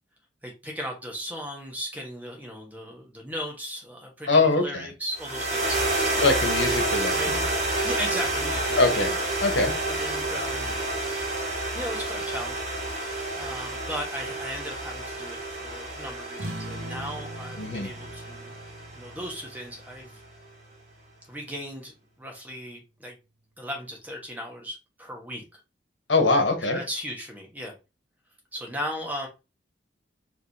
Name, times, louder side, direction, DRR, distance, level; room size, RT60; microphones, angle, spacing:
voice 1, 0.4-6.2 7.1-7.5 7.8-9.1 9.9-10.8 11.7-18.5 18.9-20.2 21.3-23.1 23.6-25.6 26.7-27.8 28.5-29.3, equal, 10° right, 1.2 m, -37 dB
voice 2, 4.3-4.7 6.2-7.4 8.8-9.1 9.4-9.8 17.6-17.9 26.1-26.8, left 3 dB, 75° left, 1.2 m, -22 dB
sound 1, 5.1-19.6, right 2 dB, 35° right, 1.6 m, -29 dB
sound 2, 16.4-21.4, right 1 dB, 80° right, 1.0 m, -41 dB
4.9 x 3.1 x 2.8 m
head